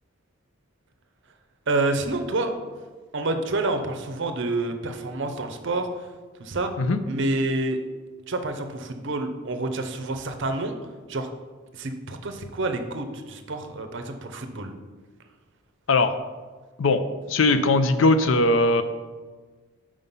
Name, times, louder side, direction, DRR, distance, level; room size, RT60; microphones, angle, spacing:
voice 1, 1.7-2.6 3.1-6.1 6.4-6.7 7.1-7.8 8.3-10.7 11.1-11.3 11.7-14.7, right 2 dB, 55° right, 7 dB, 0.6 m, -28 dB
voice 2, 17.3-18.8, left 2 dB, 65° left, 10 dB, 0.5 m, -19 dB
5.6 x 5.0 x 5.4 m, 1.4 s
head